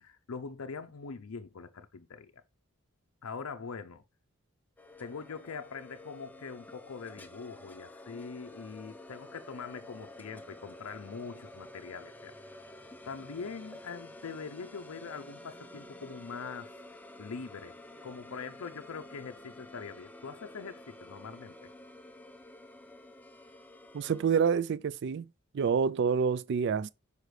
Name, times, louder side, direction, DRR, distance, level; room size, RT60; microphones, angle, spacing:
voice 1, 0.0-2.3 3.2-4.0 5.0-12.3 13.1-16.7 17.2-21.5, left 5 dB, 70° left, 0.5 m, -43 dB
sound 1, 4.8-24.3, left 1 dB, 5° left, 0.5 m, -50 dB
voice 2, 23.9-25.3 25.5-26.9, right 6 dB, 50° right, 0.3 m, -27 dB
6.6 x 4.9 x 3.2 m
head